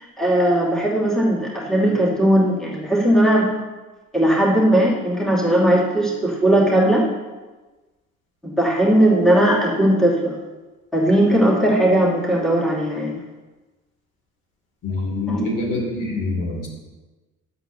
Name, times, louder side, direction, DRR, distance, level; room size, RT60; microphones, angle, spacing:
voice 1, 0.2-3.5 4.1-7.1 8.4-10.3 10.9-13.2 15.3-15.5, right 1 dB, ahead, -5 dB, 2.5 m, -18 dB
voice 2, 14.8-16.7, left 2 dB, 50° left, -3 dB, 2.4 m, -25 dB
11.0 x 8.0 x 2.7 m, 1.2 s
figure-of-eight pair, 55°, 40 cm